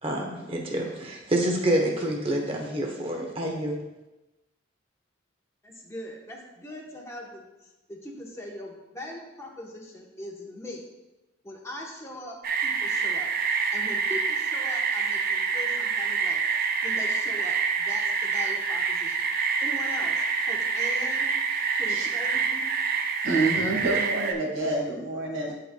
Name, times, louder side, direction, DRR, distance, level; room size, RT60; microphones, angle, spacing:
voice 1, 0.0-3.8, right 1 dB, 30° right, 1 dB, 0.9 m, -27 dB
voice 2, 5.6-10.8 11.4-13.3 13.7-16.4 16.8-19.3 19.6-21.3 21.8-22.6, left 1 dB, 15° left, -2 dB, 1.0 m, -41 dB
sound 1, 12.4-24.3, right 5 dB, 50° right, 0.5 m, -27 dB
voice 3, 23.2-25.5, right 2 dB, 85° right, -2 dB, 1.9 m, -27 dB
11.0 x 4.9 x 2.3 m, 1.0 s
head